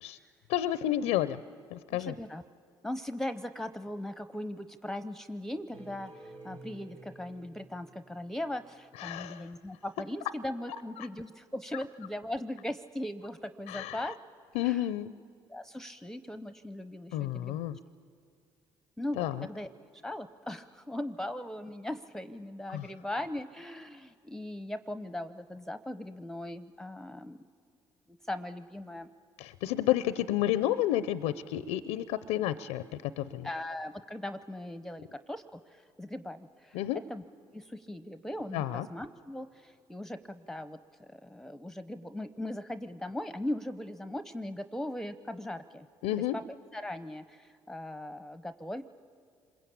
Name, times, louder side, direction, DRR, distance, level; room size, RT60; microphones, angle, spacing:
voice 1, 0.5-1.4 1.7-2.1 9.0-9.5 11.0-11.1 13.7-14.0 14.5-15.1 17.1-17.8 19.2-19.4 22.7-22.9 29.4-33.5 36.7-37.0 38.5-38.9 46.0-46.4, left 13 dB, 80° left, 15 dB, 0.5 m, -30 dB
voice 2, 1.9-2.4 2.8-14.2 14.6-14.9 15.5-17.6 19.0-27.4 28.2-29.1 33.4-37.2 37.5-45.9 46.2-46.4 46.7-48.8, left 1 dB, 5° left, 11 dB, 0.8 m, -39 dB
sound 1, 5.7-8.8, right 2 dB, 75° right, 6.4 m, -51 dB
26.5 x 22.0 x 8.5 m, 2.3 s
hypercardioid pair, 60°, 11 cm